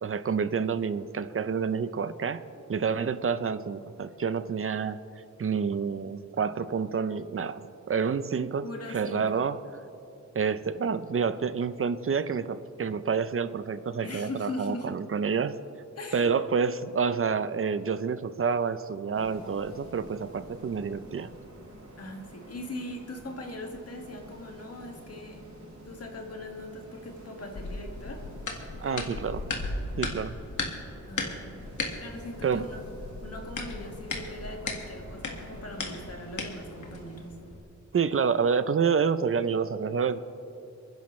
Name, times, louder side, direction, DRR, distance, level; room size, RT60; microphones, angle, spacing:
voice 1, 0.0-2.4 2.7-5.0 5.4-9.6 10.3-15.6 16.1-21.3 28.8-29.4 30.0-30.3 32.4-32.7 37.9-40.2, right 6 dB, 45° right, 13 dB, 0.6 m, -28 dB
voice 2, 8.6-9.5 14.0-15.0 16.0-16.3 22.0-25.4 25.9-28.2 28.7-29.3 31.1-31.6 32.0-32.9 33.2-37.4, left 2 dB, 55° left, 2 dB, 1.9 m, -40 dB
sound 1, 19.1-37.3, right 1 dB, 60° right, 3.9 m, -49 dB
sound 2, 27.5-37.6, left 3 dB, 80° left, 1.7 m, -37 dB
29.0 x 10.5 x 3.2 m, 2.9 s
wide cardioid pair, 130°, 30 cm